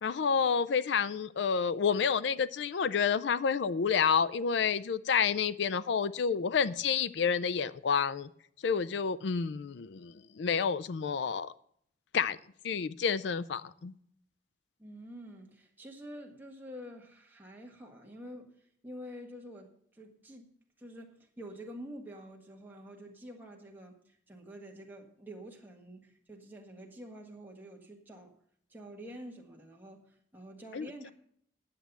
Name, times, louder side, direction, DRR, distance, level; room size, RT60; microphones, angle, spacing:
voice 1, 0.0-8.3 8.6-11.5 12.1-12.4 12.6-13.9 30.7-30.9, left 6 dB, 70° left, 16 dB, 0.4 m, -29 dB
voice 2, 14.8-20.5 20.8-28.3 28.7-31.1, equal, 10° right, 1 dB, 1.6 m, -48 dB
10.0 x 7.6 x 6.9 m, 0.65 s
head